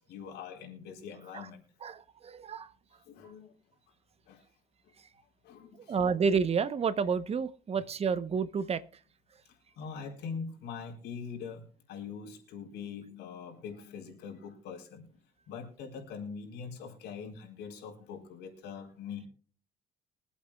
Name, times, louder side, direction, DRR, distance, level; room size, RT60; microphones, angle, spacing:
voice 1, 0.0-1.6 3.0-3.5 4.3-4.4 4.8-4.9 5.4-6.0 9.4-15.2 15.5-19.3, left 6 dB, 80° left, 1 dB, 4.1 m, -43 dB
voice 2, 1.8-2.7 5.9-8.8, right 6 dB, 35° right, 14 dB, 0.9 m, -30 dB
23.5 x 8.4 x 2.3 m, 0.41 s
cardioid pair, 110°, 17 cm